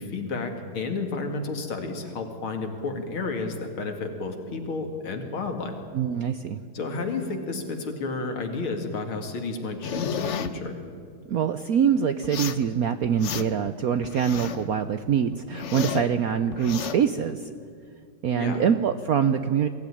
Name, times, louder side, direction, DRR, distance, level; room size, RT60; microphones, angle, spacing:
voice 1, 0.0-5.7 6.7-10.8 18.4-18.6, left 3 dB, 80° left, 4 dB, 3.1 m, -31 dB
voice 2, 5.9-6.6 11.3-17.5 18.2-19.7, right 8 dB, 70° right, 10 dB, 0.9 m, -24 dB
sound 1, 9.8-10.5 12.2-12.6 13.0-13.7 14.0-14.7 15.1-16.1 16.5-17.0, left 7 dB, 55° left, 0.8 m, -32 dB
22.0 x 15.5 x 10.0 m, 2.2 s
omnidirectional pair, 2.3 m